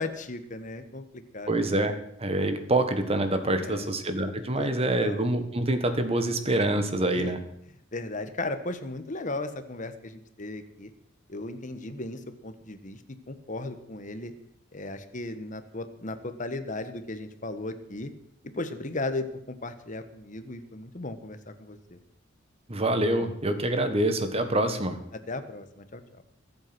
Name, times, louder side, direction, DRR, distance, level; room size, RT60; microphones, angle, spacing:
voice 1, 0.0-1.5 3.6-3.9 4.6-4.7 5.0-5.2 7.1-7.3 7.9-10.9 11.3-13.0 13.3-14.3 14.7-18.1 18.5-22.0 25.1-26.0, left 2 dB, 40° left, 9 dB, 1.4 m, -36 dB
voice 2, 1.5-1.9 2.2-7.4 22.7-25.0, right 1 dB, 30° right, 8 dB, 1.6 m, -26 dB
22.5 x 8.1 x 6.1 m, 0.74 s
head